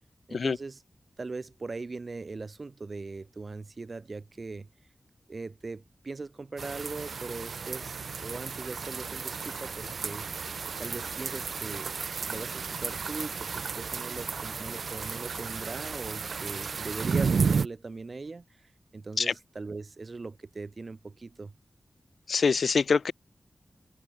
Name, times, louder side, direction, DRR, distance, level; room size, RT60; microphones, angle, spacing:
voice 1, 0.3-0.8 1.2-4.7 5.3-10.3 10.8-11.9 12.3-21.5, right 3 dB, 50° right, 7.0 m, -40 dB
sound 1, 6.6-17.7, right 5 dB, 85° right, 6.3 m, -33 dB
voice 2, 22.3-23.1, left 5 dB, 80° left, 2.6 m, -24 dB
wide cardioid pair, 95°, 0 cm